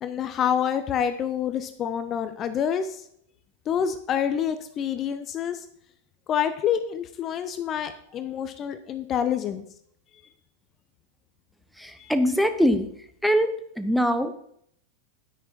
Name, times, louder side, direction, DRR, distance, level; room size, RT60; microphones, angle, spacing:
voice 1, 0.0-3.0 3.7-5.7 6.3-9.7 12.0-12.1, left 8 dB, 30° left, 10 dB, 0.7 m, -27 dB
voice 2, 11.7-14.3, equal, ahead, 10 dB, 0.9 m, -23 dB
9.4 x 9.4 x 4.3 m, 0.68 s
figure-of-eight pair, 90°, 0 cm